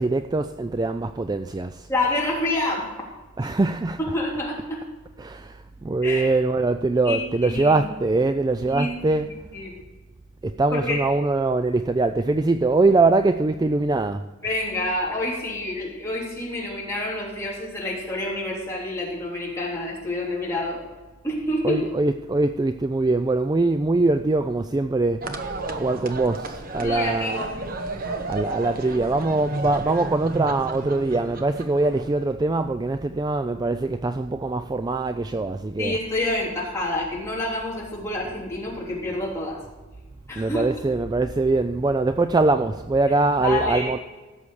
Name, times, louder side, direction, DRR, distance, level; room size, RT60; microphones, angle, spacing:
voice 1, 0.0-1.9 3.4-4.0 5.2-9.3 10.4-14.3 21.6-27.5 28.3-36.0 40.4-44.0, right 3 dB, 20° right, 0.3 m, -23 dB
voice 2, 1.9-2.8 3.4-3.5 4.0-4.8 6.0-6.3 7.1-7.8 8.7-9.2 9.5-9.8 10.7-11.0 14.4-20.8 21.2-21.8 26.8-27.5 35.8-39.6 40.3-40.6 43.4-43.9, left 2 dB, 15° left, 3.4 m, -28 dB
sound 1, 25.2-32.4, right 2 dB, 45° right, 1.0 m, -32 dB
17.0 x 7.2 x 4.8 m
head